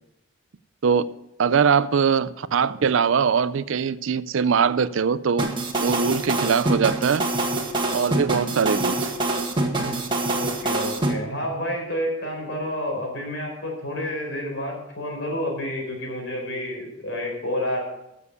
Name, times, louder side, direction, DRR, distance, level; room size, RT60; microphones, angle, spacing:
voice 1, 1.4-5.5 5.8-7.2 7.9-9.1, right 6 dB, 65° right, 0.4 m, -22 dB
sound 1, 5.4-11.1, right 2 dB, 20° right, 1.5 m, -25 dB
voice 2, 10.3-17.8, left 1 dB, 60° left, 4.8 m, -29 dB
14.0 x 7.0 x 6.9 m
head